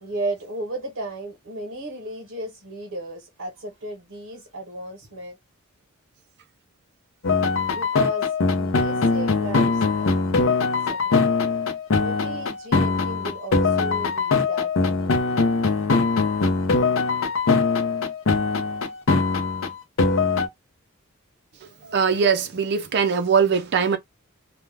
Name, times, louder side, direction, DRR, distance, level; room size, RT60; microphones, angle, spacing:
voice 1, 0.0-5.4 7.7-11.2 11.9-15.5, right 2 dB, 70° right, 0.9 m, -35 dB
sound 1, 7.2-20.5, left 4 dB, 70° left, 0.6 m, -22 dB
voice 2, 21.8-24.0, right 6 dB, 50° right, 0.4 m, -21 dB
2.3 x 2.1 x 3.2 m
head